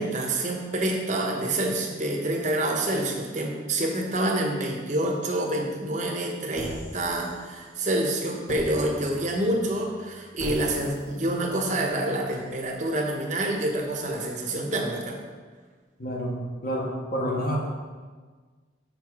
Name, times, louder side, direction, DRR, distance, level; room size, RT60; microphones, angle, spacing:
voice 1, 0.0-15.2, right 1 dB, 40° right, 1 dB, 1.0 m, -27 dB
sound 1, 6.5-7.9 8.5-14.2, equal, 85° left, 1.8 m, -41 dB
voice 2, 16.0-17.6, equal, 50° left, -2 dB, 1.3 m, -29 dB
5.8 x 5.6 x 4.7 m, 1.5 s
head